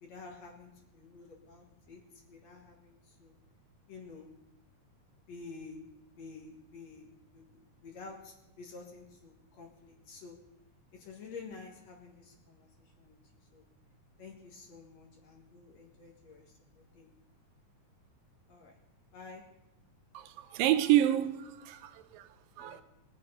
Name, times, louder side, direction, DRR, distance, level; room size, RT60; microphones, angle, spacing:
voice 1, 0.0-2.0 2.3-3.3 3.9-4.3 5.3-5.8 6.1-10.4 10.9-12.7 13.0-13.2 13.5-13.6 14.2-16.4 16.7-17.1 18.5-18.7 19.1-19.4 22.6-22.8, left 4 dB, 55° left, 2.6 m, -50 dB
voice 2, 20.1-22.3 22.6-22.8, right 13 dB, 80° right, 2.3 m, -28 dB
20.5 x 6.9 x 5.5 m
omnidirectional pair, 4.0 m